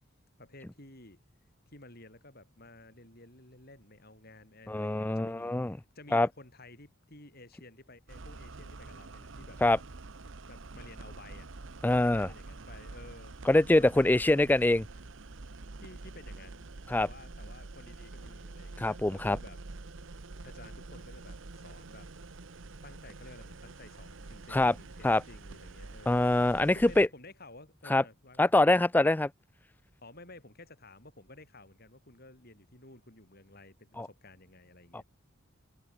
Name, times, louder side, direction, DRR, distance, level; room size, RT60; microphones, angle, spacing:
voice 1, 0.4-1.2 1.7-9.6 10.4-11.5 11.9-13.3 13.7-14.6 15.8-16.7 17.0-19.6 20.4-22.1 22.8-28.5 30.0-35.0, left 2 dB, 45° left, 7.0 m, -53 dB
voice 2, 4.7-5.8 6.1-6.3 9.6-9.8 11.8-12.3 13.5-14.8 16.9-17.1 18.8-19.4 24.5-24.7 25.0-25.2 26.1-27.1 27.9-28.0 28.4-29.3 34.0-34.1 34.9-35.0, left 2 dB, 10° left, 0.3 m, -24 dB
sound 1, 8.1-27.1, right 3 dB, 60° right, 1.0 m, -47 dB
head